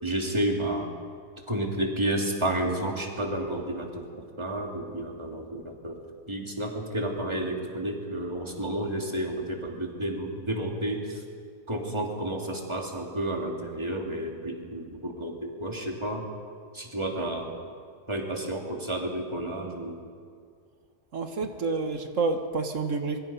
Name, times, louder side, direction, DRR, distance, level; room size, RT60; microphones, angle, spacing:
voice 1, 0.0-0.9 1.5-6.0 6.3-11.2 11.7-16.3 16.7-17.6 18.1-20.0, right 1 dB, 20° right, 0 dB, 2.8 m, -31 dB
voice 2, 21.1-23.2, right 3 dB, 90° right, 6 dB, 1.7 m, -29 dB
25.0 x 22.5 x 5.5 m, 2.2 s
omnidirectional pair, 1.3 m